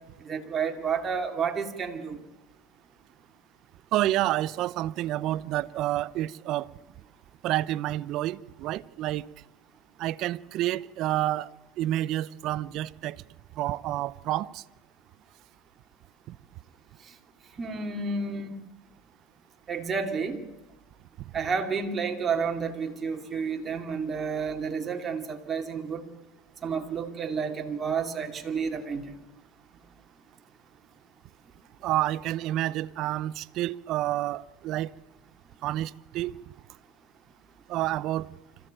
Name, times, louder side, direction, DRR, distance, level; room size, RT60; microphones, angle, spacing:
voice 1, 0.3-2.2 17.6-18.5 19.7-20.4 21.3-26.0 26.6-29.1, right 5 dB, 25° right, 2.8 m, -30 dB
voice 2, 3.9-6.7 7.4-9.3 10.0-11.5 11.8-13.2 13.6-14.6 16.3-16.4 31.8-34.9 35.6-36.3 37.7-38.3, right 14 dB, 50° right, 0.7 m, -29 dB
25.5 x 15.0 x 9.1 m
supercardioid pair, 115°, 0 cm